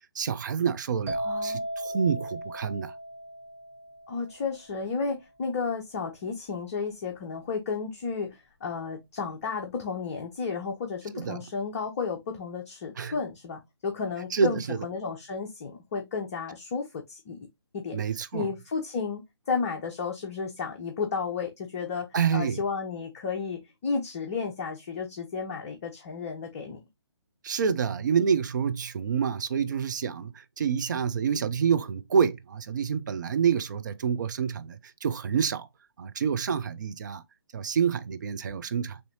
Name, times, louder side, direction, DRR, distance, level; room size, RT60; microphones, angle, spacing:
voice 1, 0.1-2.9 11.1-11.4 13.0-13.1 14.3-14.8 17.9-18.5 22.1-22.6 27.4-35.7 36.0-37.2 37.5-39.0, right 7 dB, 45° right, 0.6 m, -27 dB
sound 1, 1.1-4.7, right 1 dB, 10° right, 1.2 m, -36 dB
voice 2, 1.2-1.6 4.1-17.5 17.7-18.0 18.3-26.8, left 5 dB, 30° left, 0.8 m, -33 dB
6.8 x 2.7 x 2.8 m
figure-of-eight pair, 140°, 14 cm